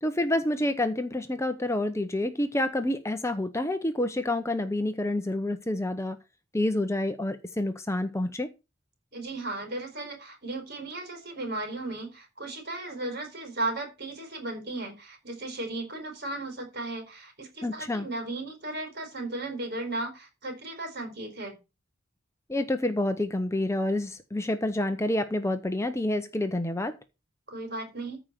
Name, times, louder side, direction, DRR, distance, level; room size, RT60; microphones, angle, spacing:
voice 1, 0.0-6.2 6.5-8.5 17.6-18.1 22.5-27.0, left 1 dB, 15° left, 0.7 m, -28 dB
voice 2, 9.1-21.6 27.5-28.2, right 2 dB, 55° right, 4.6 m, -35 dB
14.0 x 5.1 x 5.8 m
head